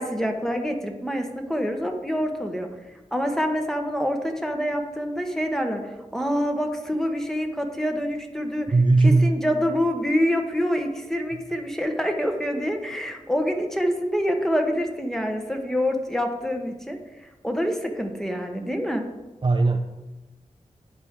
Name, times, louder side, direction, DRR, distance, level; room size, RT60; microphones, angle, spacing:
voice 1, 0.0-2.7 3.1-8.7 9.0-19.0, equal, 5° left, 4 dB, 1.1 m, -26 dB
voice 2, 8.7-9.4 19.4-19.9, right 3 dB, 35° right, 5 dB, 0.5 m, -18 dB
11.0 x 4.6 x 3.7 m, 1.1 s
cardioid pair, 45°, 14 cm